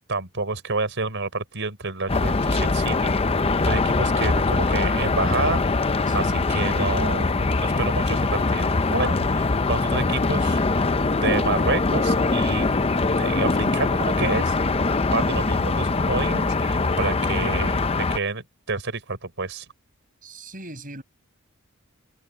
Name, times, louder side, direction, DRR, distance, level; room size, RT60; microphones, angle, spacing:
voice 1, 0.1-3.1 3.6-5.6 6.1-10.6 11.1-12.7 13.0-14.5 15.1-17.8 18.1-19.6, right 3 dB, 60° right, 5.1 m, -29 dB
sound 1, 2.1-18.2, left 3 dB, 25° left, 0.6 m, -22 dB
voice 2, 6.1-6.5 20.2-21.0, right 1 dB, 40° right, 5.8 m, -39 dB
open air
head